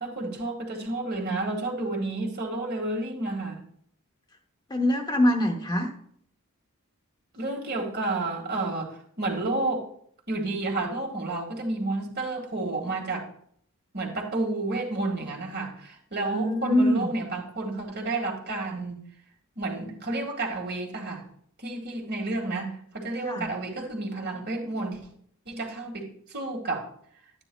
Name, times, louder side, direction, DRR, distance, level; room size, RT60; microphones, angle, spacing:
voice 1, 0.0-3.6 7.3-9.9 10.3-13.3 13.9-19.0 19.6-21.2 21.6-25.0 25.5-26.9, right 2 dB, 50° right, 1.8 m, -31 dB
voice 2, 4.7-5.9 16.3-17.1 23.2-23.5, left 1 dB, 20° left, 0.9 m, -23 dB
12.0 x 9.2 x 2.3 m
head